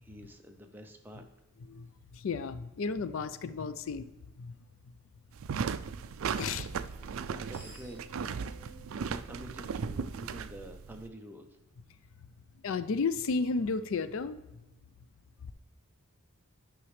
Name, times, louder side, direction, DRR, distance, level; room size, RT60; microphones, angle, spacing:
voice 1, 0.0-1.2 6.8-8.1 8.6-11.5, equal, 10° right, 4 dB, 0.7 m, -48 dB
voice 2, 1.7-4.1 4.4-4.5 6.4-6.7 12.6-14.4, left 4 dB, 65° left, 13 dB, 0.4 m, -33 dB
sound 1, 5.3-11.1, right 6 dB, 70° right, 0.3 m, -37 dB
Screech, 7.3-10.4, right 3 dB, 25° left, 2.3 m, -55 dB
9.9 x 6.0 x 3.2 m, 1.0 s
head